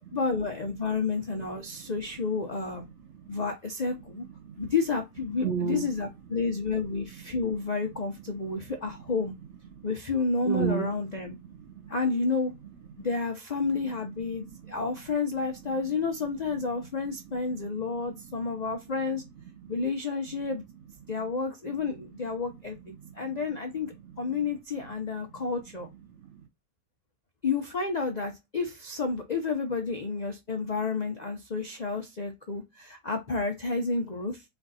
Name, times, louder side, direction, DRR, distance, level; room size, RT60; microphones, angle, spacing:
voice 1, 0.1-2.8 3.3-4.2 4.6-9.3 9.8-11.3 11.9-12.5 13.0-19.2 19.7-20.6 21.1-25.9 27.4-34.4, left 4 dB, 70° left, 0.4 m, -30 dB
voice 2, 1.2-2.0 2.5-3.4 4.2-4.7 5.4-5.9 6.3-6.6 7.0-7.4 7.8-8.0 8.3-9.0 9.7-9.9 10.4-11.9 12.9-13.1 13.8-14.9 15.7-16.0 16.6-18.7 19.1-19.8 20.3-20.4 21.1-21.2 21.6-21.7 22.5-23.2 23.5-23.6 23.8-24.2 25.3-25.5 26.1-26.4, right 7 dB, 60° right, 0.7 m, -39 dB
4.4 x 2.6 x 4.0 m
omnidirectional pair, 1.8 m